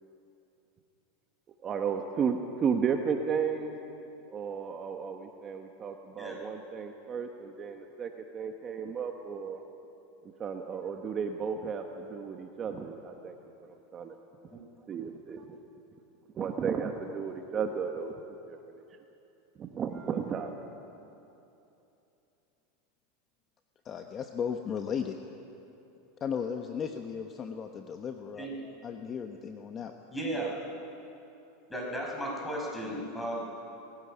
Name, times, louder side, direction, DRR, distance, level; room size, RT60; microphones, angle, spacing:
voice 1, 1.6-3.8 4.3-9.6 10.2-14.2 14.9-15.6 16.3-18.1 18.5-18.6 19.6-20.5, right 6 dB, 30° right, 4 dB, 1.2 m, -34 dB
voice 2, 23.8-25.1 26.2-28.5 28.8-29.9, left 7 dB, 30° left, 5 dB, 1.0 m, -35 dB
voice 3, 28.4-28.7 30.1-30.6 31.7-33.6, right 1 dB, 10° left, -1 dB, 5.3 m, -35 dB
20.0 x 16.0 x 9.9 m, 2.9 s
supercardioid pair, 135°, 0 cm